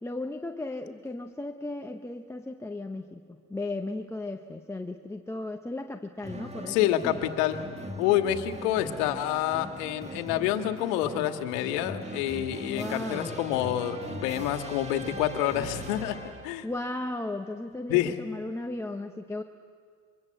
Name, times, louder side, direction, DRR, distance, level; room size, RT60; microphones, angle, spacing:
voice 1, 0.0-7.3 12.7-13.4 16.6-19.4, left 2 dB, 5° left, 3 dB, 0.8 m, -36 dB
sound 1, 6.2-16.6, right 1 dB, 15° right, 2.0 m, -40 dB
voice 2, 6.7-7.6 8.0-16.2 16.4-16.7 17.9-18.1, left 12 dB, 70° left, 8 dB, 1.9 m, -28 dB
23.5 x 23.5 x 7.7 m, 2.1 s
supercardioid pair, 120°, 49 cm